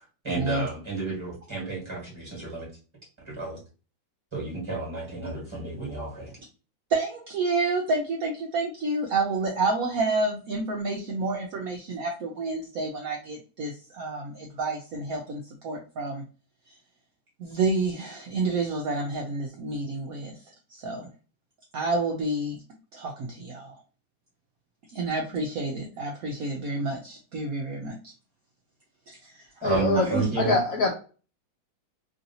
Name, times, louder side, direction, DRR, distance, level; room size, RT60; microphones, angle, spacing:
voice 1, 0.2-2.7 3.2-3.6 4.3-6.3 29.6-30.5, right 4 dB, 15° right, 1.3 m, -31 dB
voice 2, 6.9-16.2 17.4-20.3 20.8-21.1 21.7-22.6 22.9-23.7 24.9-28.0 29.1-29.3 29.9-30.2, right 3 dB, 75° right, 0.8 m, -29 dB
voice 3, 29.6-30.1 30.4-30.9, left 3 dB, 70° left, 0.8 m, -24 dB
3.1 x 2.7 x 2.7 m
omnidirectional pair, 2.0 m